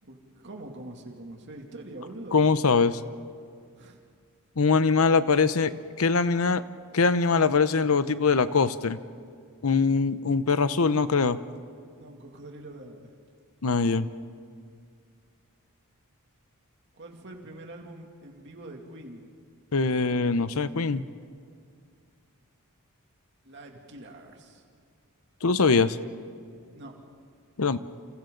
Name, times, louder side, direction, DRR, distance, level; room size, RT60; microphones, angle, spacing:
voice 1, 0.0-2.4 3.8-4.0 12.0-13.1 17.0-19.3 23.4-24.6 26.7-26.9, right 1 dB, 55° right, 1 dB, 2.6 m, -44 dB
voice 2, 2.3-3.0 4.6-5.7 6.0-6.6 6.9-9.0 9.6-11.4 13.6-14.1 19.7-21.0 25.4-26.0 27.6-27.8, left 4 dB, 70° left, 13 dB, 0.8 m, -22 dB
29.0 x 28.5 x 3.9 m, 2.2 s
head